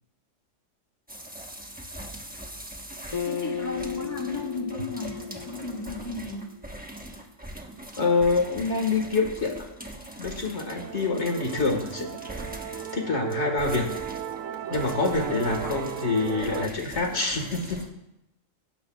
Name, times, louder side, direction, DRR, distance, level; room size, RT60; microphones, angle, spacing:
sound 1, 1.1-17.9, right 1 dB, 5° right, 1.1 m, -42 dB
Acoustic guitar, 3.1-6.6, left 7 dB, 30° left, 0.9 m, -35 dB
voice 1, 3.3-6.5, left 2 dB, 15° left, 0 dB, 1.7 m, -34 dB
voice 2, 8.0-9.7 10.2-12.1 12.9-13.9 14.7-17.8, left 4 dB, 60° left, 2 dB, 2.0 m, -26 dB
Musical instrument, 10.7-16.7, right 10 dB, 90° right, 1.2 m, -35 dB
17.0 x 16.0 x 2.4 m, 0.88 s
omnidirectional pair, 1.3 m